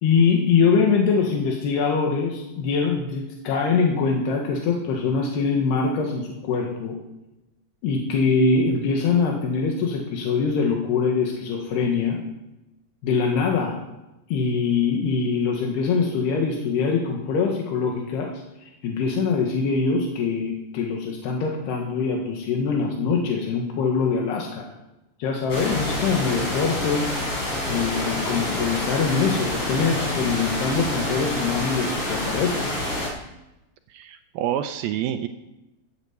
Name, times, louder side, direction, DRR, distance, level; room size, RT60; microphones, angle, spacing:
voice 1, 0.0-7.0 7.8-12.2 13.0-13.8 14.3-18.3 18.6-24.7 25.2-32.8, left 5 dB, 85° left, 1 dB, 3.6 m, -23 dB
sound 1, 25.5-33.1, left 1 dB, 35° left, 5.7 m, -27 dB
voice 2, 33.9-35.3, right 11 dB, 80° right, 8 dB, 2.4 m, -27 dB
13.5 x 9.1 x 8.1 m, 0.94 s
omnidirectional pair, 4.6 m